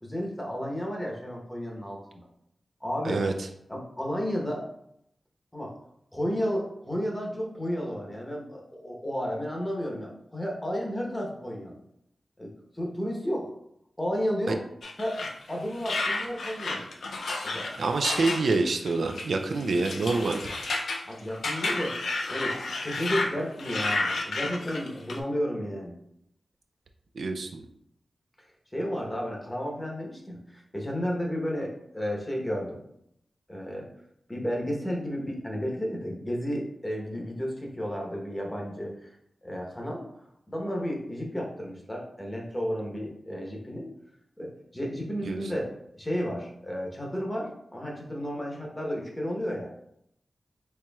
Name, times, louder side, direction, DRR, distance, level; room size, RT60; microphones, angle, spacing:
voice 1, 0.0-2.2 2.8-3.2 3.7-4.7 5.5-5.7 6.1-11.8 12.4-13.5 14.0-14.6 15.0-15.2 15.5-16.9 17.4-17.8 21.0-26.0 28.7-32.8 33.5-33.9 34.3-39.1 39.4-40.0 40.5-43.9 44.4-49.7, equal, 20° left, -1 dB, 1.0 m, -32 dB
sound 1, 14.8-23.3 23.6-25.2, left 2 dB, 90° left, 0.4 m, -31 dB
voice 2, 17.8-20.4 27.2-27.6 45.3-45.4, right 3 dB, 80° right, 5 dB, 0.4 m, -26 dB
4.3 x 2.9 x 2.3 m, 0.74 s
cardioid pair, 65°, 0 cm